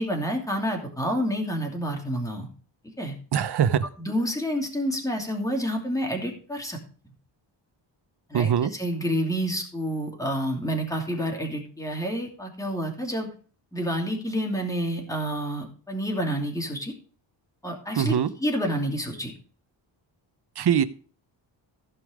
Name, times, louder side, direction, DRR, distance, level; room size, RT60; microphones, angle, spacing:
voice 1, 0.0-2.5 3.0-3.1 4.0-6.8 8.3-13.3 13.7-16.9 17.6-19.3, equal, 5° left, 1 dB, 2.7 m, -29 dB
voice 2, 3.3-3.9 8.3-8.7 18.0-18.3 20.6-20.8, right 8 dB, 55° right, 13 dB, 0.9 m, -22 dB
15.5 x 5.4 x 5.0 m, 0.41 s
wide cardioid pair, 145°, 46 cm